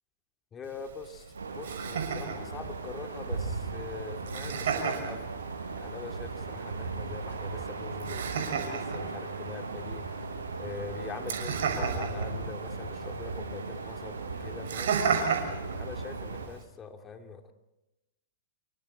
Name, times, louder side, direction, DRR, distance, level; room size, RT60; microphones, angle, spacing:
voice 1, 0.5-5.4 5.8-10.1 10.6-17.5, left 5 dB, 20° left, 4 dB, 2.8 m, -43 dB
Laughter, 0.6-16.6, right 6 dB, 65° right, 6.3 m, -36 dB
sound 1, 1.3-16.5, right 4 dB, 85° right, 6.4 m, -37 dB
27.5 x 24.5 x 4.4 m, 0.98 s
hypercardioid pair, 110°, 0 cm